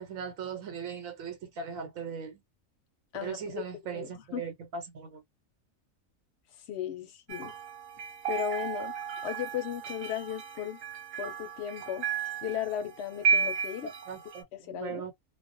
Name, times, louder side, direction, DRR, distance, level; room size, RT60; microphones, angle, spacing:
voice 1, 0.0-2.4 3.2-5.2 13.8-15.1, right 6 dB, 80° right, 1.1 m, -39 dB
voice 2, 3.1-3.5 3.9-4.4 6.7-7.5 8.3-8.9 9.2-10.8 11.2-12.1 12.4-13.9 14.6-15.0, left 10 dB, 65° left, 0.7 m, -36 dB
sound 1, 7.3-14.4, right 6 dB, 60° right, 0.8 m, -33 dB
2.4 x 2.1 x 2.5 m
omnidirectional pair, 1.4 m